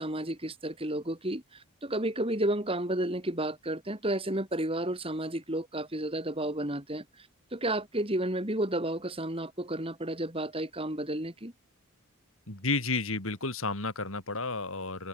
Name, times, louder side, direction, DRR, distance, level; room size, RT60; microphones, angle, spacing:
voice 1, 0.0-7.0 7.5-11.5, right 1 dB, 25° right, 4.1 m, -32 dB
voice 2, 12.5-15.1, left 3 dB, 65° left, 4.6 m, -32 dB
head